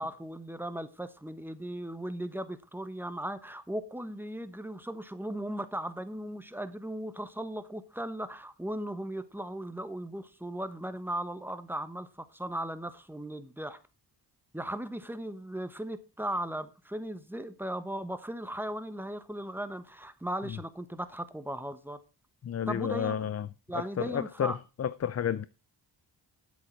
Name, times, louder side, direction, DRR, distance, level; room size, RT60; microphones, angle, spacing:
voice 1, 0.0-13.8 14.5-22.0 22.7-23.3 23.7-24.6, right 1 dB, 5° right, 1.1 m, -37 dB
voice 2, 22.4-25.5, left 9 dB, 40° left, 0.5 m, -32 dB
9.7 x 8.1 x 4.6 m
cardioid pair, 75°, 42 cm